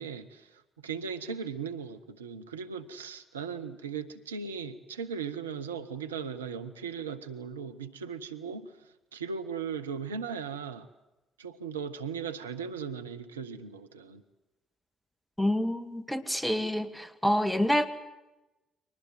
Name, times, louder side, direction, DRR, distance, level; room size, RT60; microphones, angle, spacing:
voice 1, 0.0-8.7 9.1-10.9 11.4-14.2, right 6 dB, 80° right, 9 dB, 0.8 m, -38 dB
voice 2, 15.4-17.9, equal, 5° left, 10 dB, 1.9 m, -27 dB
23.5 x 19.5 x 9.3 m, 1.0 s
figure-of-eight pair, 45°, 0 cm